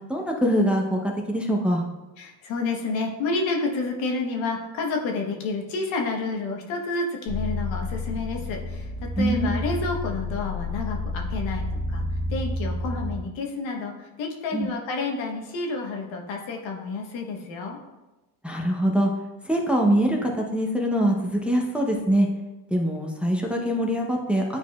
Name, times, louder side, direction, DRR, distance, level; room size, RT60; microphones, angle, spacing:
voice 1, 0.1-1.8 9.2-9.5 14.5-14.7 18.4-19.1 19.5-22.3 22.7-24.4, equal, ahead, 0 dB, 0.8 m, -23 dB
voice 2, 2.2-8.9 9.2-12.0 12.3-17.8, left 3 dB, 70° left, 1 dB, 1.3 m, -29 dB
sound 1, 7.3-13.2, left 2 dB, 55° right, 1.3 m, -30 dB
9.9 x 4.1 x 2.4 m, 1.1 s
supercardioid pair, 85°, 48 cm